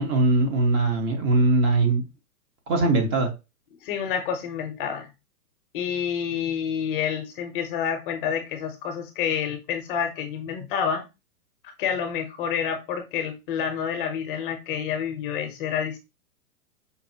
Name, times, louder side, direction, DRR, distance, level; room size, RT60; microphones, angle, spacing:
voice 1, 0.0-2.0 2.7-3.3, right 2 dB, 25° right, 0.9 m, -21 dB
voice 2, 3.8-5.1 5.7-11.0 11.8-16.0, left 8 dB, 35° left, 0.7 m, -28 dB
5.3 x 2.5 x 2.7 m
hypercardioid pair, 135°, 45 cm